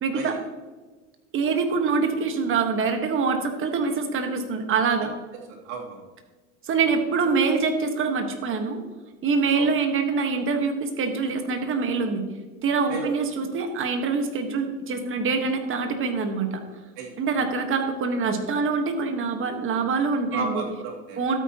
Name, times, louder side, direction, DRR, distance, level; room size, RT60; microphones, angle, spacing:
voice 1, 0.0-0.4 1.3-5.1 6.6-8.8 9.2-12.2 12.6-16.5 17.2-20.6 21.2-21.4, right 4 dB, 30° right, 6 dB, 1.4 m, -25 dB
voice 2, 5.5-6.0 9.5-9.7 12.9-13.1 17.0-17.2 20.3-21.2, right 4 dB, 75° right, -1 dB, 3.0 m, -33 dB
12.5 x 8.9 x 2.9 m, 1.3 s
supercardioid pair, 135°, 38 cm